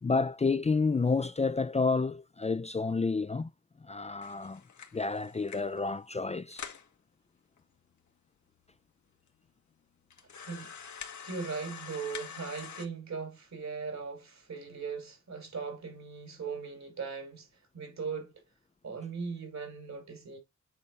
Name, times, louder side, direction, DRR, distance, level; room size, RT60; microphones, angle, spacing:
voice 1, 0.0-3.5 3.8-4.6 4.9-6.6, left 4 dB, 25° left, 0.4 m, -29 dB
sound 1, 4.2-5.8 6.2-6.3 6.5-6.9 7.6-7.7 7.9-8.0 8.7-8.8 9.3-9.4 10.1-12.9, left 7 dB, 80° left, 1.5 m, -45 dB
voice 2, 11.2-17.5 17.7-18.4 18.8-20.4, right 5 dB, 70° right, 3.6 m, -39 dB
8.5 x 4.0 x 3.3 m
cardioid pair, 60°, 29 cm